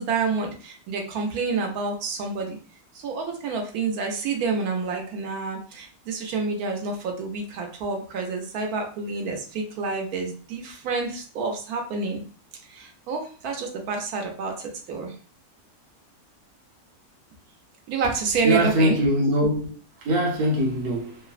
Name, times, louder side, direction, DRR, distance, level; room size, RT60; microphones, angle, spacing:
voice 1, 0.0-2.6 3.0-12.2 12.7-15.1 17.9-19.0, right 4 dB, 80° right, 1.1 m, -28 dB
voice 2, 18.4-19.7 20.0-21.2, equal, 55° right, 0.7 m, -22 dB
3.1 x 2.0 x 2.3 m
omnidirectional pair, 1.6 m